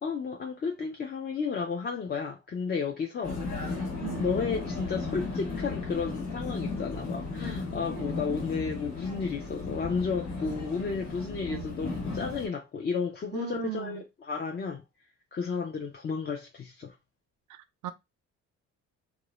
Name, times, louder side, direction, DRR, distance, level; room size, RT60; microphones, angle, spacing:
voice 1, 0.0-3.8 4.2-14.8 15.3-16.9, left 5 dB, 35° left, 0.4 m, -33 dB
Vehicle, 3.2-12.5, left 3 dB, 70° left, 1.2 m, -35 dB
voice 2, 4.0-4.3 7.9-8.1 11.5-11.8 13.3-14.0 17.5-17.9, right 11 dB, 75° right, 0.5 m, -38 dB
2.4 x 2.0 x 2.9 m
cardioid pair, 90°, 30 cm